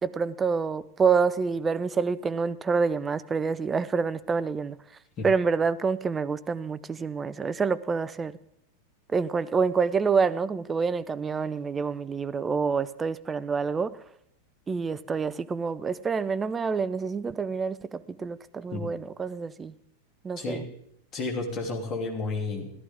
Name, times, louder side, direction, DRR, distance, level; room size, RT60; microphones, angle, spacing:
voice 1, 0.0-4.8 5.2-8.4 9.1-14.0 14.7-19.8 20.2-20.6, right 5 dB, 15° right, 0.5 m, -27 dB
voice 2, 21.1-22.7, left 3 dB, 30° left, 2.8 m, -31 dB
14.5 x 13.5 x 3.7 m
figure-of-eight pair, 90°, 0 cm